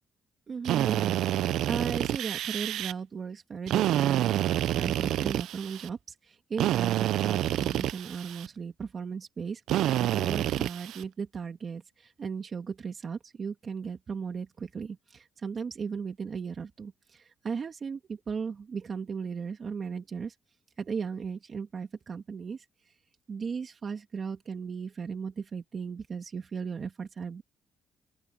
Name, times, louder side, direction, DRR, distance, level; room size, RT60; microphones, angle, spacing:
voice 1, 0.5-1.2 1.6-4.4 4.7-9.6 10.0-20.4 20.8-22.9 23.3-27.4, right 6 dB, 45° right, 2.3 m, -36 dB
Drill, 0.6-2.9 3.7-5.9 6.6-8.5 9.7-11.0, right 13 dB, 85° right, 0.4 m, -28 dB
open air
cardioid pair, 90°, 0 cm